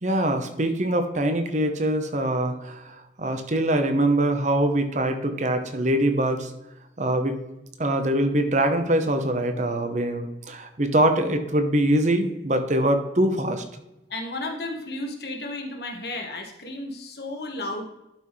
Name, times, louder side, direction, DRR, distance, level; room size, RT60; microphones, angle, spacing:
voice 1, 0.0-6.5 7.0-7.4 7.8-13.6, right 1 dB, 40° right, 7 dB, 1.0 m, -23 dB
voice 2, 14.1-17.8, left 2 dB, 65° left, 2 dB, 1.6 m, -33 dB
11.5 x 5.9 x 3.2 m, 0.95 s
head